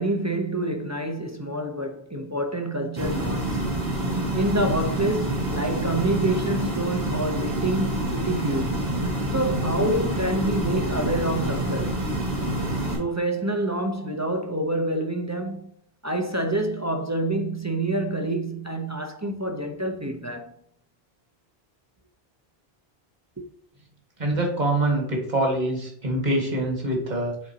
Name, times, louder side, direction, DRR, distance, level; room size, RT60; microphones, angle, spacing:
voice 1, 0.0-3.7 4.3-8.9 9.3-12.1 13.0-15.7 16.0-20.5 23.4-23.5, right 1 dB, 20° right, 0.5 m, -27 dB
sound 1, 3.0-13.0, right 1 dB, 70° right, 2.3 m, -27 dB
voice 2, 24.2-27.3, right 1 dB, 45° right, 1.8 m, -24 dB
9.2 x 4.0 x 2.8 m
omnidirectional pair, 1.0 m